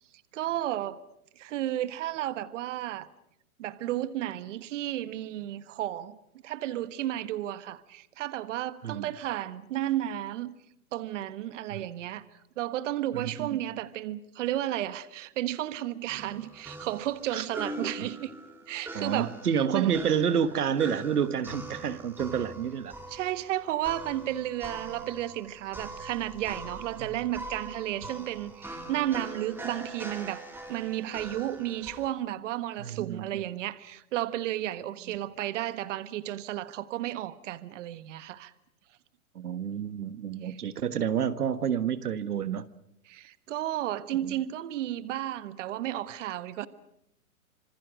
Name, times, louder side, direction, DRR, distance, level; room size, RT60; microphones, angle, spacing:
voice 1, 0.3-1.0 1.4-3.1 3.6-6.2 6.4-10.5 10.9-12.2 12.6-18.3 18.7-19.3 19.7-19.9 23.1-38.5 40.4-40.6 43.1-46.7, right 13 dB, 55° right, 1.4 m, -33 dB
voice 2, 13.1-13.6 17.3-17.4 18.0-18.1 18.9-22.9 27.0-27.2 32.8-33.4 35.1-35.2 39.3-42.7 44.2-44.4, right 8 dB, 85° right, 1.5 m, -29 dB
sound 1, 16.1-32.1, right 2 dB, 5° right, 3.0 m, -42 dB
26.5 x 25.0 x 6.3 m
hypercardioid pair, 135°, 44 cm